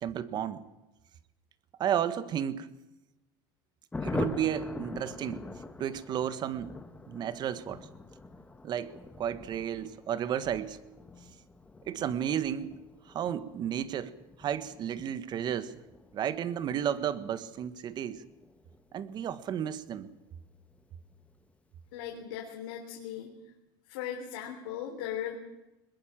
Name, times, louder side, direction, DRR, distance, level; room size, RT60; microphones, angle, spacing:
voice 1, 0.0-0.6 1.8-2.7 4.0-5.4 5.8-6.7 7.1-7.9 8.6-10.8 11.9-12.7 13.1-14.1 14.4-15.8 16.1-18.2 18.9-20.1, right 9 dB, 40° right, 14 dB, 1.6 m, -32 dB
Thunder, 3.9-20.0 20.3-20.4 20.7-20.8 21.1-21.5, left 3 dB, 10° left, 1.8 m, -43 dB
voice 2, 21.9-23.3 23.9-25.4, left 10 dB, 85° left, 0 dB, 3.5 m, -38 dB
21.5 x 21.0 x 7.6 m, 0.99 s
supercardioid pair, 120°, 11 cm